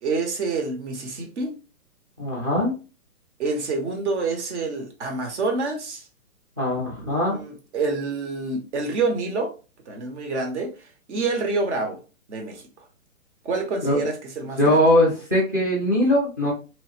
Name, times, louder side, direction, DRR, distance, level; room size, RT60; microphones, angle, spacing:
voice 1, 0.0-1.5 3.4-6.0 7.0-9.5 9.9-10.7 11.1-12.0 12.3-12.7 13.4-14.8, right 3 dB, 50° right, 1.1 m, -27 dB
voice 2, 2.2-2.7 6.6-7.4 13.8-14.0 14.6-16.5, left 1 dB, 15° right, 0.5 m, -21 dB
3.0 x 2.6 x 2.8 m
hypercardioid pair, 165°, 43 cm